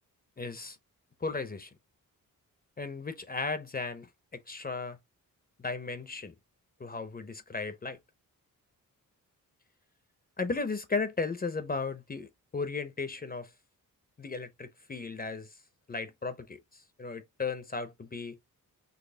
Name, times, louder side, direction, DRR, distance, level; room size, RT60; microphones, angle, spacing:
voice 1, 0.4-0.8 1.2-1.7 2.8-4.1 4.3-5.0 5.6-6.3 6.8-8.0 10.4-13.5 14.2-15.5 15.9-18.4, left 4 dB, 25° left, 0.7 m, -35 dB
4.1 x 2.9 x 2.8 m
cardioid pair, 95°, 34 cm